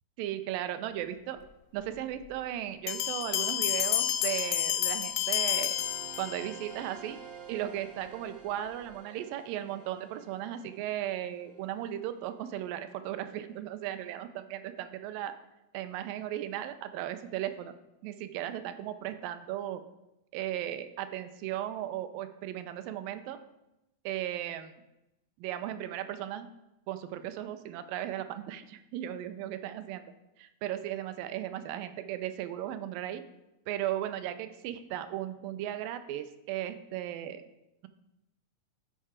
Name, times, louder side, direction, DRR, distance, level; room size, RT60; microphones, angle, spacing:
voice 1, 0.2-1.4 1.7-5.8 6.2-7.2 7.5-15.4 15.7-17.7 18.0-19.8 20.3-23.4 24.1-24.7 25.4-26.5 26.9-30.0 30.4-33.2 33.7-37.4, right 12 dB, 85° right, 10 dB, 2.3 m, -36 dB
Bell, 2.9-6.7, left 13 dB, 85° left, 2.2 m, -30 dB
sound 1, 5.3-12.4, right 6 dB, 65° right, 1.4 m, -50 dB
12.0 x 4.6 x 5.0 m, 0.92 s
omnidirectional pair, 3.9 m